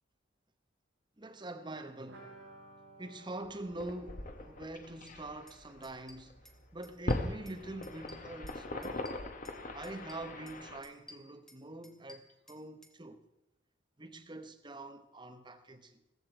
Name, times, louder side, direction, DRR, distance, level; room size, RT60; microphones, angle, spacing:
voice 1, 1.2-2.4 3.0-9.0 9.7-13.2 14.0-16.0, right 2 dB, 25° right, 0.9 m, -45 dB
sound 1, 2.1-7.7 7.9-8.0 8.3-8.4, right 2 dB, 75° right, 5.7 m, -59 dB
sound 2, 3.4-10.8, left 2 dB, 40° left, 1.1 m, -41 dB
sound 3, 5.1-5.2 5.5-5.6 5.8-6.6 6.8-7.6 7.8-9.6 9.8-10.6 10.8-12.9, left 1 dB, 5° left, 1.3 m, -56 dB
15.0 x 14.5 x 4.5 m
head